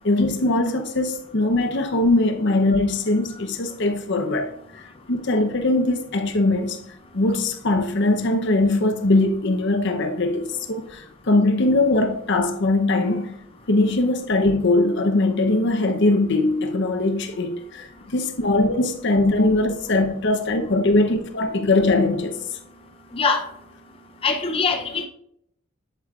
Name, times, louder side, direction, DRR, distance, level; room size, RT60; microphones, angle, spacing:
voice 1, 0.0-4.5 5.1-6.8 7.1-13.3 13.7-17.9 18.1-22.4, left 2 dB, 60° left, 0.8 m, -21 dB
voice 2, 24.2-25.1, left 4 dB, 25° left, 0.6 m, -22 dB
8.2 x 8.1 x 2.4 m
head